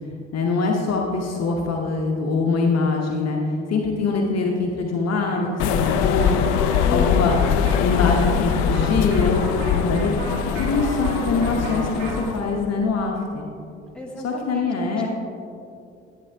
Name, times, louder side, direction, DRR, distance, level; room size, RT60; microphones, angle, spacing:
voice 1, 0.3-7.3 7.8-10.1 10.6-13.5 14.2-15.1, left 4 dB, 50° left, 1 dB, 1.0 m, -23 dB
sound 1, 5.3-12.3, right 1 dB, 65° right, 2.2 m, -35 dB
sound 2, 5.6-12.5, left 8 dB, 70° left, 0.6 m, -22 dB
voice 2, 6.8-7.7 13.9-15.1, equal, 5° left, -3 dB, 2.2 m, -35 dB
11.0 x 8.3 x 3.4 m, 2.6 s
hypercardioid pair, 50°, 34 cm